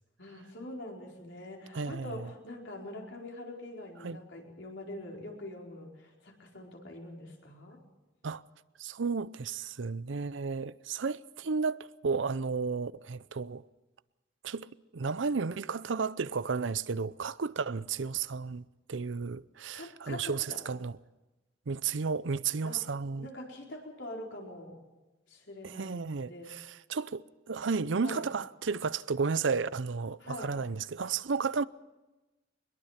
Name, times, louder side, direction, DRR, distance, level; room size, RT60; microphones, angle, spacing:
voice 1, 0.2-7.8 19.7-20.6 22.6-22.8 23.2-24.8 25.3-26.6 28.0-28.2 30.2-30.5, left 1 dB, 75° left, 4.6 m, -44 dB
voice 2, 1.7-2.3 4.0-4.2 8.2-8.4 8.8-13.6 14.4-14.7 14.9-18.6 18.9-21.0 21.7-23.3 25.6-31.6, right 5 dB, 85° right, 0.6 m, -33 dB
23.0 x 21.5 x 5.8 m
head